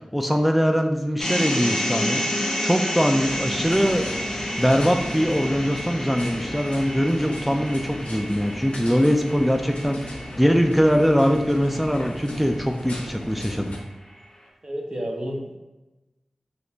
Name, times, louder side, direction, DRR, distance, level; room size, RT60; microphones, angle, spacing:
voice 1, 0.0-4.1 4.6-13.7, equal, 5° right, 4 dB, 0.3 m, -22 dB
sound 1, 1.2-13.3, equal, 35° left, 0.7 m, -31 dB
sound 2, 3.2-13.8, left 1 dB, 85° left, 0.6 m, -37 dB
voice 2, 14.6-15.6, equal, 45° right, 0 dB, 0.7 m, -30 dB
2.8 x 2.5 x 3.2 m, 1.1 s
cardioid pair, 45°, 2 cm